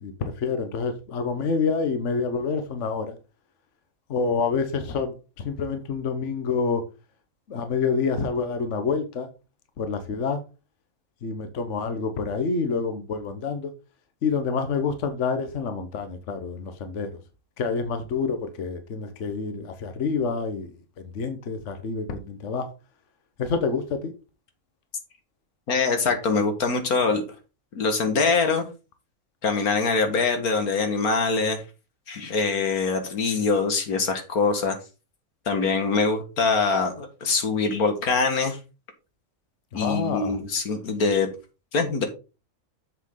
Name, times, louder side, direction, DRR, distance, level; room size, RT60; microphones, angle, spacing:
voice 1, 0.0-3.1 4.1-6.8 7.5-9.3 9.8-10.4 11.2-13.7 14.2-17.2 17.6-20.7 21.0-22.7 23.4-24.1 39.7-40.4, left 5 dB, 60° left, 1.3 m, -27 dB
voice 2, 25.7-27.2 27.7-28.7 29.4-31.6 32.1-34.8 35.5-38.6 39.7-41.3 41.7-42.1, left 4 dB, 90° left, 2.1 m, -23 dB
7.4 x 6.8 x 3.8 m
omnidirectional pair, 1.5 m